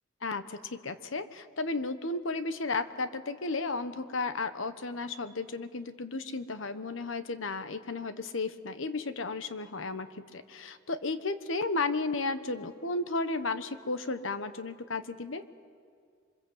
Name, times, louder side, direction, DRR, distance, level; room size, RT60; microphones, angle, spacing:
voice 1, 0.2-15.4, left 3 dB, 85° left, 11 dB, 1.2 m, -34 dB
27.0 x 24.5 x 8.0 m, 2.1 s
head